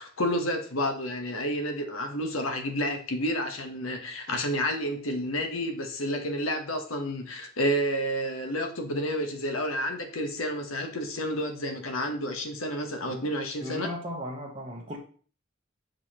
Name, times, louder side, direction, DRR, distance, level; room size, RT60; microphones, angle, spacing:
voice 1, 0.0-13.9, equal, 75° left, 5 dB, 1.1 m, -30 dB
voice 2, 13.6-15.0, equal, 30° right, -3 dB, 1.1 m, -37 dB
6.5 x 5.0 x 2.9 m, 0.41 s
head